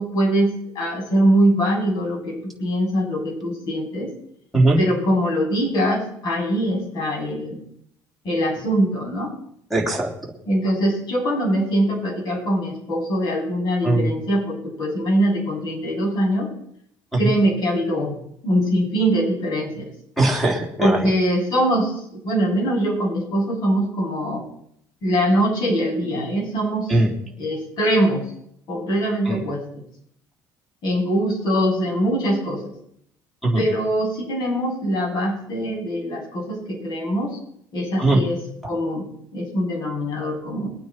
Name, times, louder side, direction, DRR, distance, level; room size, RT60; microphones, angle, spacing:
voice 1, 0.0-4.1 4.8-7.6 8.2-9.3 10.5-16.5 17.2-18.1 18.4-19.9 20.8-24.4 25.0-27.0 27.4-28.3 28.7-29.6 30.8-32.7 33.5-37.4 37.7-38.4 38.7-39.1 39.3-40.7, equal, 55° left, -2 dB, 8.0 m, -22 dB
voice 2, 9.7-10.1 13.8-14.1 20.2-21.0 26.9-27.1 29.3-29.4 33.4-33.6 38.0-38.2, right 2 dB, ahead, 0 dB, 3.5 m, -19 dB
22.5 x 9.1 x 4.5 m, 0.70 s
cardioid pair, 115°, 8 cm